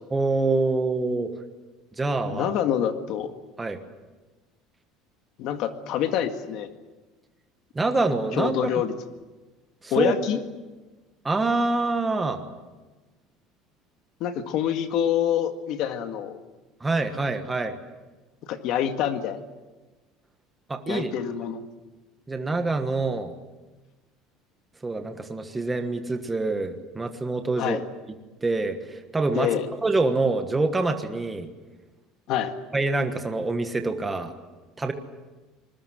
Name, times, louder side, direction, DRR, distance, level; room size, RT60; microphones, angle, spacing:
voice 1, 0.1-1.3 2.0-2.5 3.6-3.8 7.7-8.6 9.8-10.1 11.2-12.4 16.8-17.8 20.7-21.1 22.3-23.3 24.8-27.8 28.4-29.5 29.8-31.5 32.7-34.3 34.8-34.9, right 3 dB, 10° right, 6 dB, 1.4 m, -25 dB
voice 2, 2.2-3.3 5.4-6.7 8.3-8.9 9.9-10.4 14.2-16.4 18.5-19.4 20.9-21.6 27.6-27.8 29.4-29.7 32.3-32.6, left 9 dB, 50° left, 7 dB, 1.9 m, -26 dB
27.0 x 21.0 x 7.7 m, 1.2 s
cardioid pair, 175°, 0 cm